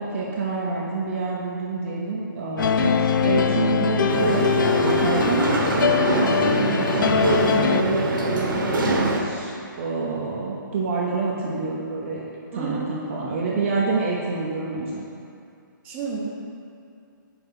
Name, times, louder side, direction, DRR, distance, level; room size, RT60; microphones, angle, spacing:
voice 1, 0.0-12.2 12.5-15.0, right 4 dB, 35° right, -4 dB, 0.7 m, -27 dB
sound 1, 2.6-7.8, left 6 dB, 70° left, 0.4 m, -22 dB
sound 2, 4.1-9.2, right 2 dB, 75° right, 1.1 m, -24 dB
voice 2, 12.5-12.9 15.8-16.2, right 4 dB, 10° right, -6 dB, 0.9 m, -31 dB
5.4 x 4.4 x 5.9 m, 2.4 s
hypercardioid pair, 165°, 11 cm